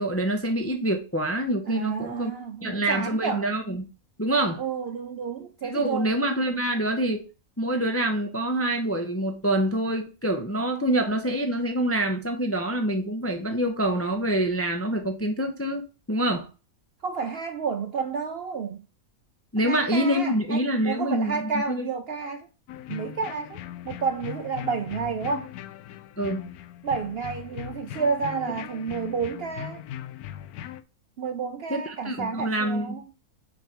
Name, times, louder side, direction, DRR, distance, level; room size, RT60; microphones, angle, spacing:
voice 1, 0.0-2.3 2.6-3.8 4.2-4.6 5.6-7.2 7.6-16.5 19.5-21.9 26.2-26.5 31.7-33.0, right 1 dB, 15° left, 0.5 m, -26 dB
voice 2, 1.7-3.5 4.6-6.1 17.0-18.9 19.6-22.5 22.9-23.6 23.9-25.5 26.8-29.8 31.2-33.0, right 5 dB, 60° right, 0.7 m, -30 dB
sound 1, 22.7-30.8, left 11 dB, 80° left, 1.1 m, -39 dB
6.0 x 3.9 x 5.9 m
omnidirectional pair, 1.5 m